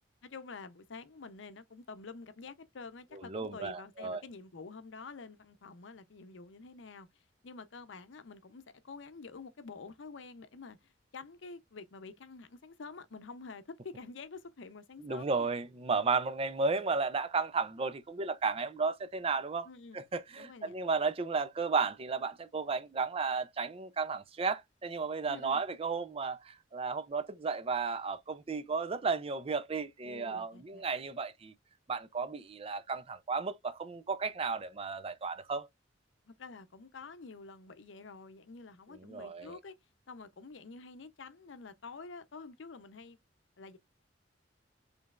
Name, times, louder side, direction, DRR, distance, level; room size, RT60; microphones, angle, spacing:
voice 1, 0.2-7.1 7.4-10.8 11.1-15.5 19.6-20.0 20.4-20.7 25.3-25.6 30.0-30.9 36.3-39.7 40.1-43.2 43.6-43.8, left 4 dB, 75° left, 0.6 m, -48 dB
voice 2, 3.1-4.2 15.0-19.7 19.9-31.5 31.9-35.7 38.9-39.6, right 4 dB, 30° right, 0.5 m, -34 dB
5.2 x 3.3 x 2.4 m
head